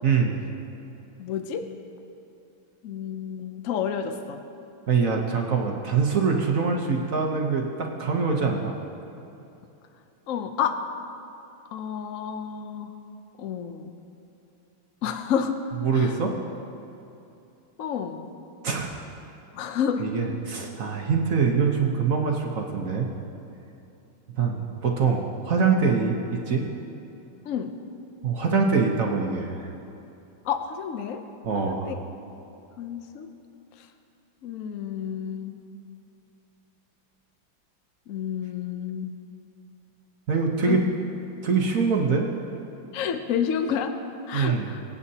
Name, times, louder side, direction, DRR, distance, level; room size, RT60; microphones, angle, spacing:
voice 1, 0.0-0.4 4.9-8.8 15.8-16.3 18.6-18.9 20.0-23.1 24.3-26.7 28.2-29.7 31.4-31.9 40.3-40.8 41.4-42.3 44.3-44.7, right 5 dB, 55° right, 1 dB, 1.1 m, -24 dB
voice 2, 1.2-1.7 2.8-4.4 10.3-10.8 11.7-12.9 13.4-14.0 15.0-15.6 15.9-16.2 17.8-18.3 19.5-20.0 27.4-27.7 30.4-31.2 31.6-31.9 32.8-33.3 33.8-33.9 34.4-35.6 38.1-39.1 40.7-40.8 42.9-43.9 44.3-44.8, left 8 dB, 75° left, 7 dB, 0.7 m, -30 dB
24.5 x 8.6 x 2.8 m, 2.8 s
omnidirectional pair, 2.1 m